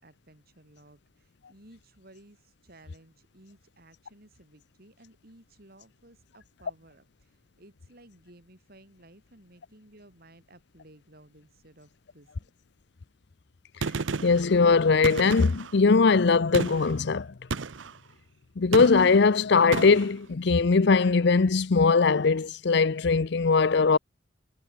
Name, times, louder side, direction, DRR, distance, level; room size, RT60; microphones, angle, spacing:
voice 1, 0.0-12.5, right 1 dB, 55° right, 7.5 m, -56 dB
Gunshot gunfire, 13.8-14.5 15.0-15.8 16.5-16.9 17.5-18.0 18.7-19.2 19.7-20.1, right 4 dB, 85° right, 0.8 m, -32 dB
voice 2, 14.2-17.3 18.6-24.0, left 4 dB, 65° left, 0.6 m, -21 dB
head